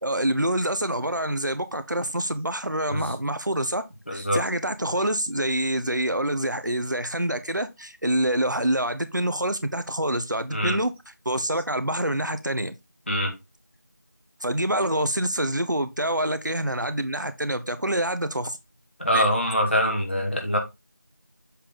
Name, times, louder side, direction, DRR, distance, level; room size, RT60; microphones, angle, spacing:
voice 1, 0.0-3.8 4.1-10.9 11.2-12.7 14.4-18.6 19.1-19.2, right 1 dB, 75° right, 1.2 m, -26 dB
voice 2, 4.1-4.4 10.5-10.8 13.1-13.3 19.0-20.6, equal, 40° left, 1.9 m, -24 dB
7.4 x 4.6 x 3.7 m
figure-of-eight pair, 180°, 10 cm